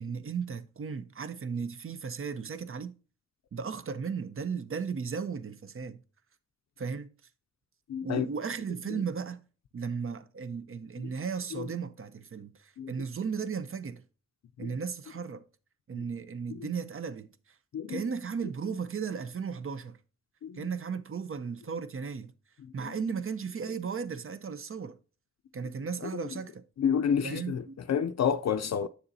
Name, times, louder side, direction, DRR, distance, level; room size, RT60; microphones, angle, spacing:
voice 1, 0.0-2.9 3.5-6.0 6.8-7.1 8.0-9.4 9.7-14.0 14.6-15.4 15.9-17.3 17.9-20.0 20.5-22.3 22.7-25.0 25.5-26.6 27.2-27.7, right 6 dB, 45° right, 0.6 m, -35 dB
voice 2, 7.9-8.2 8.9-9.0 11.0-11.1 11.5-11.7 12.8-12.9 14.6-14.8 15.9-16.0 16.5-16.7 17.7-18.0 20.4-20.7 22.8-22.9 26.8-28.9, left 7 dB, 65° left, 0.4 m, -30 dB
7.8 x 6.8 x 2.7 m
cardioid pair, 70°, 29 cm